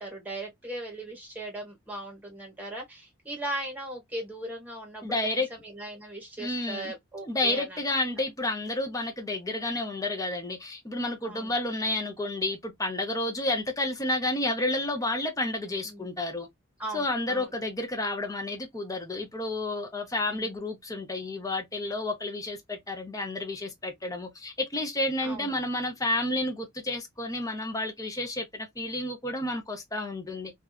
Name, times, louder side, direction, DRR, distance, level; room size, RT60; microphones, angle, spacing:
voice 1, 0.0-7.8 11.2-11.5 15.8-16.1 16.8-17.5 20.2-20.6 25.2-25.5, right 1 dB, 10° right, 1.2 m, -38 dB
voice 2, 5.0-5.5 6.4-6.9 7.2-16.5 16.9-30.5, left 2 dB, 15° left, 0.7 m, -30 dB
2.7 x 2.4 x 2.3 m
head